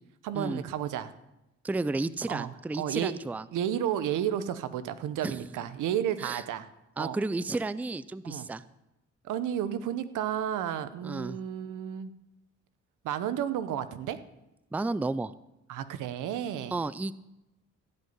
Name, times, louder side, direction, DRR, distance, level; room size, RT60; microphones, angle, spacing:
voice 1, 0.2-1.1 2.3-2.5 2.8-3.2 3.5-6.7 7.0-7.2 8.2-8.5 9.2-12.1 13.0-14.2 15.7-16.8, right 10 dB, 85° right, 12 dB, 1.0 m, -32 dB
voice 2, 1.6-3.5 5.2-5.4 6.2-6.4 7.0-8.6 11.0-11.4 14.7-15.3 16.7-17.1, right 2 dB, 5° right, 17 dB, 0.4 m, -32 dB
15.0 x 5.5 x 9.5 m, 0.91 s
cardioid pair, 90°, 30 cm